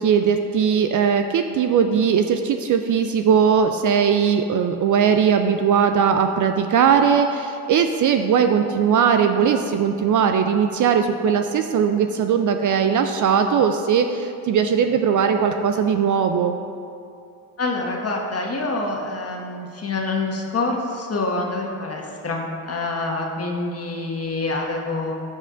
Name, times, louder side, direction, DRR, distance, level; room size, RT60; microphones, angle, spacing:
voice 1, 0.0-16.6, right 7 dB, 45° right, 7 dB, 0.5 m, -19 dB
voice 2, 17.6-25.1, left 2 dB, 30° left, 0 dB, 1.5 m, -26 dB
14.5 x 5.3 x 2.5 m, 2.5 s
hypercardioid pair, 55°, 46 cm